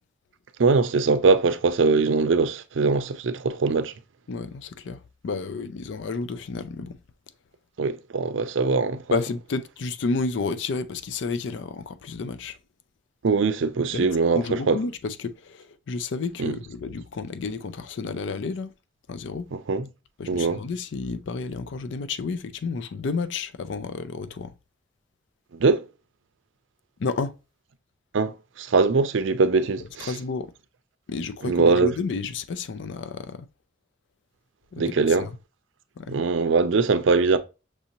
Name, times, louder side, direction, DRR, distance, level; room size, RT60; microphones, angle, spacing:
voice 1, 0.6-3.9 7.8-9.0 13.2-14.8 16.4-16.6 19.5-19.9 20.3-20.6 25.6-25.8 28.1-30.1 31.4-31.9 34.8-35.3 36.1-37.4, right 4 dB, 80° right, 0.5 m, -22 dB
voice 2, 4.3-7.0 9.1-12.6 13.9-18.7 19.1-19.5 20.2-24.5 27.0-27.3 30.1-30.5 31.1-33.5 34.7-35.3 36.0-36.2, left 4 dB, 70° left, 0.4 m, -31 dB
6.1 x 2.6 x 2.9 m
head